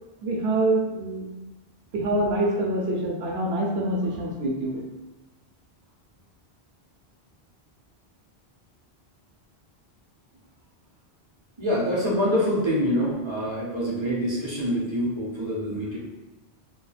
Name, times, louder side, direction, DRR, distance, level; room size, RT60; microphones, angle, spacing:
voice 1, 0.2-1.3 1.9-4.8, right 1 dB, 75° right, -1 dB, 0.9 m, -25 dB
voice 2, 11.6-16.0, equal, 35° right, -5 dB, 0.5 m, -25 dB
2.3 x 2.3 x 3.2 m, 1.1 s
omnidirectional pair, 1.1 m